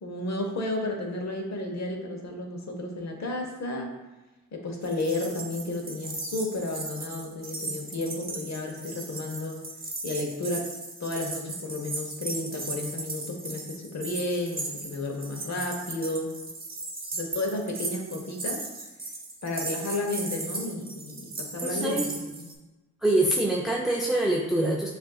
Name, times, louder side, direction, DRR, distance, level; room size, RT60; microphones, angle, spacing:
voice 1, 0.0-3.9 4.5-9.6 10.0-10.7 11.0-16.3 17.1-18.6 19.4-22.4, left 2 dB, 60° left, 2 dB, 1.0 m, -32 dB
sound 1, 4.8-22.5, right 3 dB, 30° right, 0.8 m, -37 dB
voice 2, 21.6-22.1 23.0-24.9, right 1 dB, ahead, -3 dB, 0.5 m, -25 dB
7.1 x 2.6 x 2.3 m, 1.1 s
cardioid pair, 65°, 31 cm